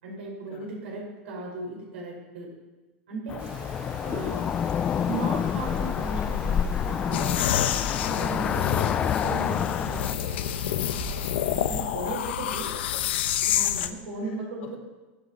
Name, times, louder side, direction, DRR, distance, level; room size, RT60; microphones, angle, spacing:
voice 1, 0.0-2.5 3.1-3.4 4.0-4.5 5.1-7.4 8.1-8.9 9.2-10.6 11.7-12.7 13.5-14.8, right 2 dB, 80° right, -1 dB, 5.0 m, -36 dB
Cricket / Motor vehicle (road), 3.3-10.1, left 8 dB, 15° left, 0.3 m, -28 dB
sound 1, 3.4-11.8, right 2 dB, 25° right, 4.6 m, -42 dB
sound 2, 7.1-13.9, left 11 dB, 70° left, 1.0 m, -28 dB
voice 2, 12.6-13.6 14.3-14.7, left 7 dB, 85° left, 0 dB, 3.8 m, -47 dB
21.5 x 9.2 x 4.2 m, 1.2 s
supercardioid pair, 170°, 6 cm